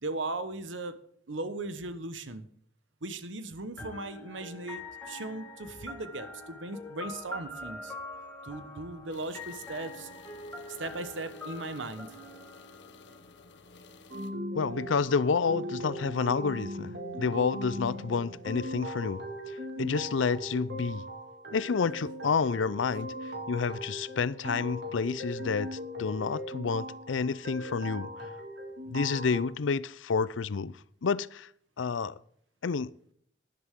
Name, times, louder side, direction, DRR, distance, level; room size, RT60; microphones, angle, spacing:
voice 1, 0.0-0.9 1.3-2.5 3.0-7.9 8.4-10.1 10.8-12.1, right 2 dB, 85° right, 1.2 m, -38 dB
sound 1, 3.8-13.6, left 2 dB, 10° left, 2.3 m, -44 dB
sound 2, 9.1-14.3, left 4 dB, 65° left, 1.1 m, -54 dB
sound 3, 14.1-29.4, equal, 65° right, 2.1 m, -39 dB
voice 2, 14.5-19.2 19.8-21.0 21.5-23.1 23.5-28.1 28.9-31.5 31.8-32.1 32.6-32.9, left 5 dB, 90° left, 0.5 m, -29 dB
12.5 x 11.0 x 3.7 m
head